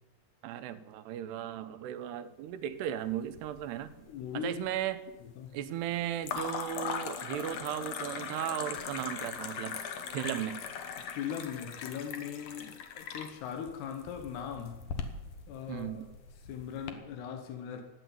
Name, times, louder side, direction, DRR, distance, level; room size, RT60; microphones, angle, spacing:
voice 1, 0.4-5.1 5.5-9.8 10.1-10.6 15.7-16.1, right 11 dB, 90° right, 11 dB, 3.0 m, -36 dB
sound 1, 3.1-3.8 4.1-4.8 6.2-16.9, left 6 dB, 65° left, 1.8 m, -40 dB
voice 2, 4.1-4.5 5.2-5.6 11.2-14.8 15.5-16.0 16.5-17.8, left 8 dB, 85° left, 5 dB, 3.3 m, -39 dB
14.0 x 9.1 x 9.3 m, 1.1 s
omnidirectional pair, 4.6 m